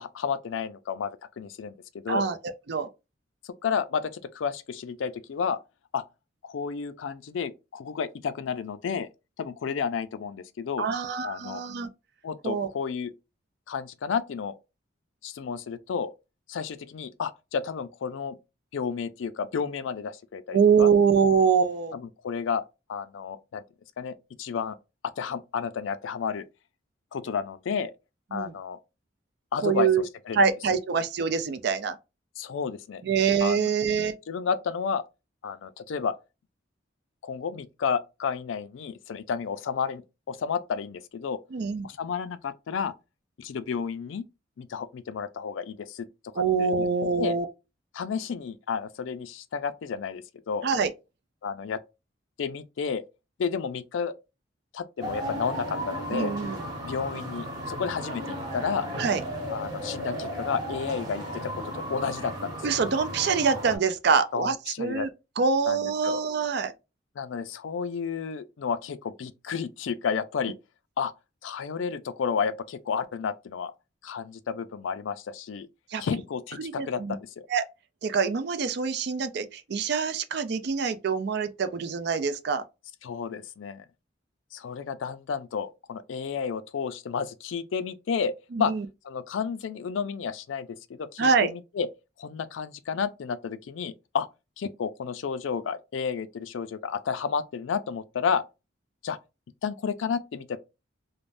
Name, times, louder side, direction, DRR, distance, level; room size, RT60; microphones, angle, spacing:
voice 1, 0.0-2.3 3.6-5.6 5.9-6.0 6.4-9.1 9.4-10.9 11.2-11.6 12.2-13.1 13.7-14.5 15.2-16.1 16.5-18.4 18.7-20.9 21.9-22.6 22.9-23.6 24.0-24.8 25.2-26.5 27.1-27.9 28.3-28.8 29.5-29.9 30.3-30.5 32.4-33.0 33.4-33.7 34.3-35.0 35.4-36.1 37.2-40.0 40.3-41.4 41.8-42.9 43.4-44.3 44.6-46.1 46.6-46.9 47.2-47.4 47.9-50.7 51.4-51.8 52.4-53.0 53.4-54.1 54.7-56.3 56.8-58.9 59.5-62.7 64.3-65.1 65.7-66.2 67.2-70.5 71.0-71.1 71.4-73.7 74.0-75.7 76.0-77.5 83.0-83.8 84.5-88.3 88.6-88.7 89.0-91.9 92.2-94.3 94.6-98.4 99.0-99.2 99.6-100.6, left 6 dB, 80° left, 0.4 m, -31 dB
voice 2, 2.1-2.9 10.8-11.9 12.4-12.7 20.5-21.9 28.3-28.5 29.6-30.0 30.3-32.0 33.0-34.2 41.5-41.9 46.4-47.5 50.6-50.9 56.1-56.6 59.0-59.2 62.6-65.1 65.4-66.7 75.9-76.0 76.6-77.1 77.5-77.7 78.0-82.6 88.5-88.8 91.2-91.5, right 5 dB, 60° right, 0.4 m, -25 dB
sound 1, 55.0-63.8, equal, 20° right, 1.1 m, -35 dB
3.3 x 2.0 x 2.5 m
head